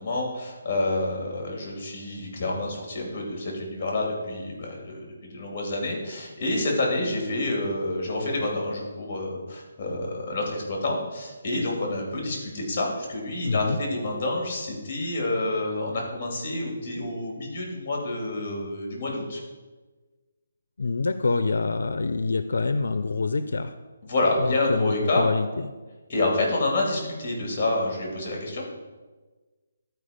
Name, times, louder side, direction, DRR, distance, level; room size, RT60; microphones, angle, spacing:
voice 1, 0.0-19.4 24.0-25.3 26.1-28.6, left 2 dB, 25° left, 0 dB, 2.5 m, -28 dB
voice 2, 13.4-13.8 20.8-23.7 24.4-25.7, left 3 dB, 75° left, 11 dB, 0.5 m, -26 dB
12.0 x 4.6 x 5.1 m, 1.3 s
hypercardioid pair, 175°, 0 cm